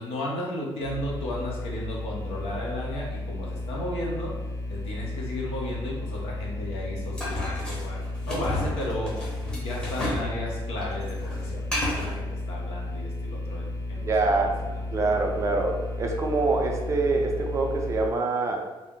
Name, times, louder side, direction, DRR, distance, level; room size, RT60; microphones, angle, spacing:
voice 1, 0.0-4.3 4.7-9.2 9.5-14.8, left 1 dB, 80° left, -3 dB, 0.8 m, -34 dB
sound 1, 0.8-18.1, left 2 dB, 30° left, 0.4 m, -33 dB
sound 2, 7.2-10.3 10.6-12.2, left 1 dB, 10° left, 0.8 m, -32 dB
voice 2, 14.0-14.6 14.9-18.6, right 3 dB, 30° right, 1 dB, 0.4 m, -25 dB
2.6 x 2.0 x 3.5 m, 1.1 s
cardioid pair, 140°, 10 cm